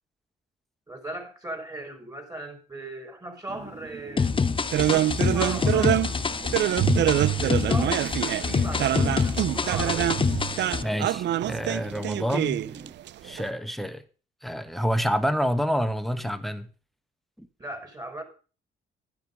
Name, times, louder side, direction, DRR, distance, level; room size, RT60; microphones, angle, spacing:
voice 1, 0.9-4.3 4.8-6.1 7.4-10.2 17.6-18.2, right 2 dB, 20° right, 4.8 m, -38 dB
sound 1, 3.5-12.9, right 4 dB, 35° right, 2.2 m, -44 dB
sound 2, 4.2-10.8, left 5 dB, 25° left, 0.8 m, -26 dB
sound 3, 4.7-13.5, right 12 dB, 65° right, 0.5 m, -25 dB
voice 2, 10.8-12.6 13.2-14.0 14.4-16.7 17.4-17.5, equal, ahead, 1.3 m, -28 dB
10.5 x 10.5 x 5.3 m
cardioid pair, 90°, 20 cm